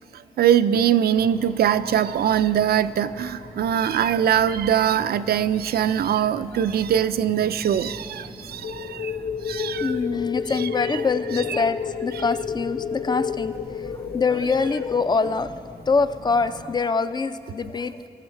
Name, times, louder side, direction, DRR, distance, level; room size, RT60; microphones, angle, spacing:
voice 1, 0.1-10.0 10.6-11.0 11.3-11.6 12.1-12.2, right 9 dB, 75° right, 13 dB, 0.4 m, -22 dB
sound 1, 1.1-16.8, left 2 dB, 60° left, 1.8 m, -43 dB
sound 2, 8.6-15.1, left 6 dB, 85° left, 0.6 m, -31 dB
voice 2, 9.8-18.1, left 4 dB, 25° left, 12 dB, 0.4 m, -24 dB
21.5 x 7.3 x 4.5 m, 2.9 s
wide cardioid pair, 100°, 16 cm